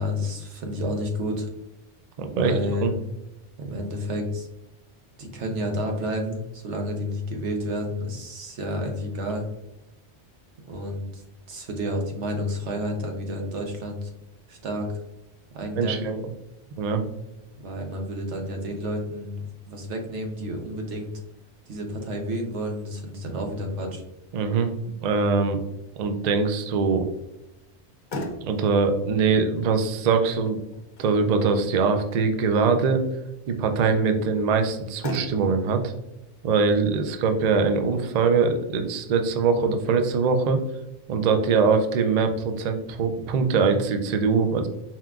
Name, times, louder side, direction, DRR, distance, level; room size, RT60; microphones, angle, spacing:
voice 1, 0.0-1.5 2.3-2.9 3.6-4.5 5.2-9.4 10.7-11.2 11.5-14.1 14.5-14.9 15.5-16.1 17.6-21.1 21.7-24.0, equal, 80° right, 3 dB, 1.1 m, -30 dB
voice 2, 2.2-2.5 2.8-2.9 15.8-16.2 16.8-17.0 24.3-24.7 25.0-25.6 26.0-27.0 28.4-30.6 31.0-33.0 33.5-35.9 36.4-40.6 41.1-44.7, right 5 dB, 60° right, 6 dB, 0.4 m, -22 dB
Motor vehicle (road), 27.7-40.7, left 1 dB, 50° left, 0.6 m, -42 dB
4.3 x 3.6 x 2.3 m, 0.89 s
omnidirectional pair, 1.2 m